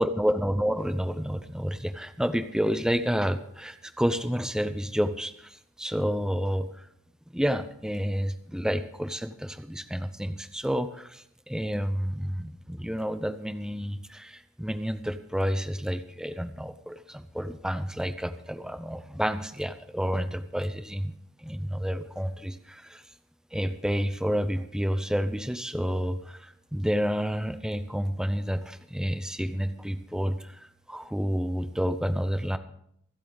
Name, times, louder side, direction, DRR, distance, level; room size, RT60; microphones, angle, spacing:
voice 1, 0.0-6.9 7.3-23.0 23.5-32.6, equal, 5° right, 10 dB, 0.6 m, -30 dB
24.0 x 8.2 x 4.0 m, 0.71 s
head